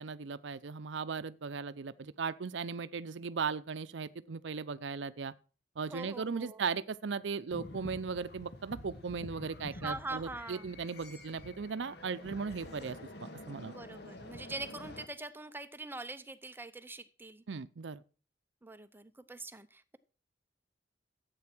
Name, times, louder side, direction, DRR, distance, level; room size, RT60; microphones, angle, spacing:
voice 1, 0.0-5.3 5.8-13.8 17.5-18.0, right 5 dB, 75° right, 0.6 m, -37 dB
voice 2, 5.9-6.6 9.7-10.7 13.7-17.4 18.6-20.0, right 2 dB, 10° right, 0.7 m, -43 dB
sound 1, 7.5-15.0, left 1 dB, 60° left, 1.6 m, -48 dB
13.0 x 8.5 x 6.0 m
head